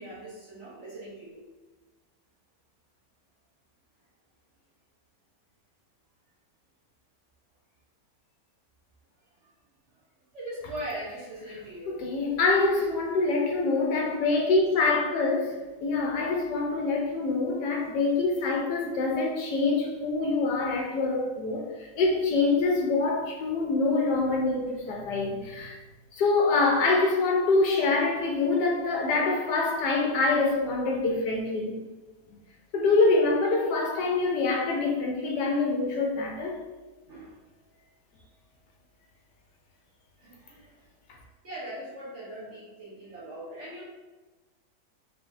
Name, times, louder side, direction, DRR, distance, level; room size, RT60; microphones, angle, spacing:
voice 1, 0.0-1.4 10.3-12.0 37.1-37.3 40.2-40.8 41.4-43.8, right 1 dB, 45° right, -7 dB, 1.2 m, -40 dB
voice 2, 11.9-21.6 21.9-25.8 26.1-31.7 32.7-36.6, left 3 dB, 75° left, 0 dB, 1.3 m, -25 dB
3.7 x 3.5 x 2.5 m, 1.2 s
omnidirectional pair, 1.9 m